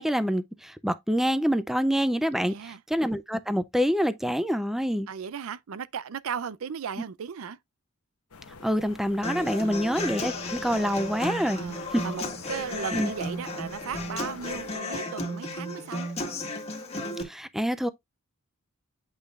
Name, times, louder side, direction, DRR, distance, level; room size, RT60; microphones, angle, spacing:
voice 1, 0.0-5.1 8.6-11.6 11.9-12.0 12.9-13.1 17.2-17.9, equal, ahead, 0.3 m, -26 dB
voice 2, 2.4-2.8 5.1-7.6 9.6-9.9 11.6-16.1, right 7 dB, 70° right, 0.4 m, -36 dB
sound 1, 8.3-14.8, left 4 dB, 85° left, 1.0 m, -48 dB
Human voice / Acoustic guitar, 9.2-17.2, left 1 dB, 30° left, 1.6 m, -34 dB
8.3 x 5.2 x 2.4 m
head